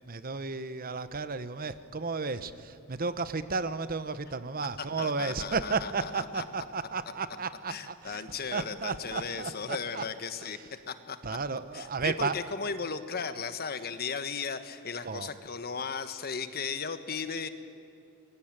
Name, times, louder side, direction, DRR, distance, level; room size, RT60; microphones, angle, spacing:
voice 1, 0.0-10.0 11.2-12.4 15.0-15.3, right 4 dB, 45° right, 12 dB, 1.1 m, -33 dB
voice 2, 4.8-6.4 7.7-11.2 11.7-17.5, left 5 dB, 45° left, 10 dB, 1.4 m, -36 dB
28.5 x 22.5 x 9.0 m, 2.6 s
head